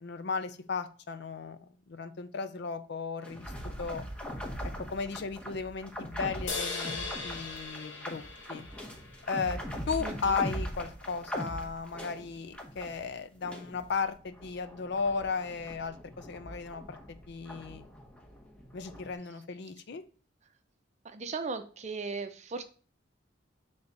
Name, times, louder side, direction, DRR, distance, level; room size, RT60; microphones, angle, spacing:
voice 1, 0.0-1.6 1.9-3.5 3.8-4.0 4.9-8.2 8.5-8.6 9.3-9.6 9.9-17.0 17.3-17.9 18.7-20.0, left 5 dB, 65° left, 10 dB, 0.5 m, -35 dB
sound 1, 3.2-13.1 13.4-19.1, equal, 5° left, 0.9 m, -41 dB
sound 2, 6.5-10.0, left 4 dB, 85° left, 1.2 m, -39 dB
voice 2, 10.0-10.4 21.0-22.6, right 4 dB, 40° right, 9 dB, 0.6 m, -37 dB
6.8 x 3.5 x 3.9 m, 0.40 s
head